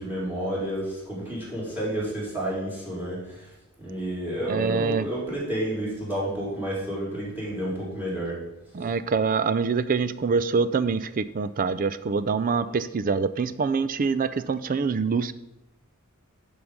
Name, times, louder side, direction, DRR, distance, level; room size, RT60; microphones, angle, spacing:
voice 1, 0.0-3.5 3.8-8.4, right 1 dB, 10° right, -5 dB, 3.9 m, -30 dB
voice 2, 4.5-5.1 8.7-15.3, right 5 dB, 40° right, 14 dB, 0.4 m, -25 dB
10.5 x 5.5 x 5.0 m, 0.95 s
head